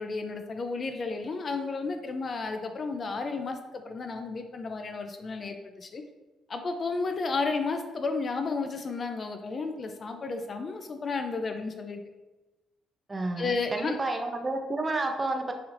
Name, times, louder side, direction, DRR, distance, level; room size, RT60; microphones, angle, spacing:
voice 1, 0.0-6.0 6.5-12.0 13.4-14.0, left 4 dB, 35° left, 6 dB, 0.4 m, -32 dB
voice 2, 13.1-15.5, right 2 dB, 20° right, 4 dB, 0.5 m, -30 dB
6.1 x 3.1 x 2.5 m, 1.1 s
cardioid pair, 130°, 0 cm